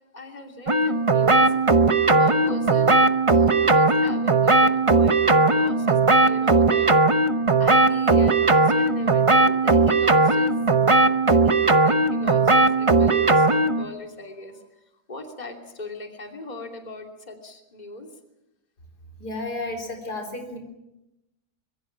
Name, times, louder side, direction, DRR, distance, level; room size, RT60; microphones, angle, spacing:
voice 1, 0.1-7.3 7.6-10.5 11.1-18.1, left 2 dB, 25° left, 3 dB, 2.9 m, -39 dB
sound 1, 0.7-13.8, right 3 dB, 25° right, 0.8 m, -18 dB
voice 2, 19.2-20.6, left 2 dB, 80° left, 4 dB, 4.7 m, -32 dB
25.0 x 22.5 x 7.3 m, 0.95 s
omnidirectional pair, 1.7 m